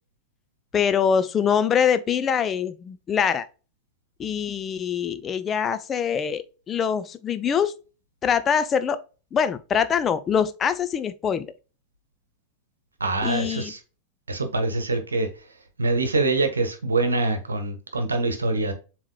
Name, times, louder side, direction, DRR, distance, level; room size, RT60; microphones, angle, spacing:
voice 1, 0.7-3.5 4.2-7.7 8.2-9.0 9.3-11.5 13.2-13.7, left 7 dB, 25° left, 0.5 m, -24 dB
voice 2, 13.0-13.8 14.3-15.3 15.8-18.7, right 3 dB, 75° right, 1.1 m, -24 dB
7.3 x 3.0 x 2.2 m
figure-of-eight pair, 90°, 0 cm